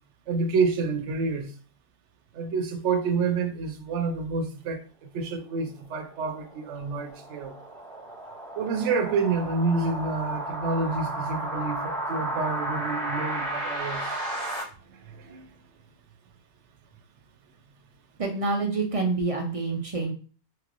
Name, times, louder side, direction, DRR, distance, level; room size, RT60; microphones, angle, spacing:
voice 1, 0.3-1.5 2.3-7.5 8.6-14.1 14.9-15.4, right 4 dB, 85° right, 0.9 m, -28 dB
sound 1, 6.1-14.6, right 1 dB, 35° left, 1.2 m, -33 dB
voice 2, 18.2-20.1, right 3 dB, 50° right, 0.4 m, -27 dB
3.1 x 3.0 x 2.5 m
omnidirectional pair, 1.2 m